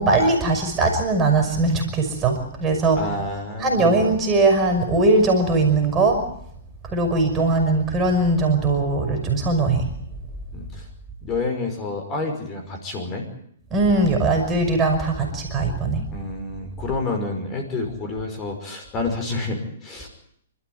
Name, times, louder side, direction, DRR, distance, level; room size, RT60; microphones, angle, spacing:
voice 1, 0.0-3.0 3.6-6.2 6.9-9.9 13.7-16.0, right 3 dB, 20° right, 4 dB, 5.7 m, -20 dB
voice 2, 3.0-3.8 10.5-10.9 11.2-13.3 16.1-20.1, left 3 dB, 25° left, 4 dB, 5.4 m, -29 dB
28.0 x 13.0 x 9.6 m, 0.70 s
hypercardioid pair, 140°, 0 cm